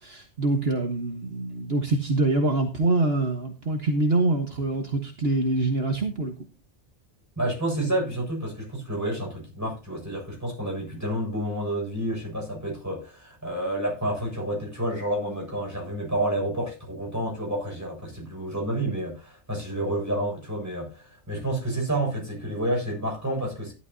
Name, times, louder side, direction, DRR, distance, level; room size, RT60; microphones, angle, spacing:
voice 1, 0.0-6.3, right 2 dB, 60° right, 1.7 m, -25 dB
voice 2, 7.4-23.7, right 1 dB, 15° right, 7.2 m, -29 dB
14.5 x 11.5 x 2.8 m
omnidirectional pair, 1.2 m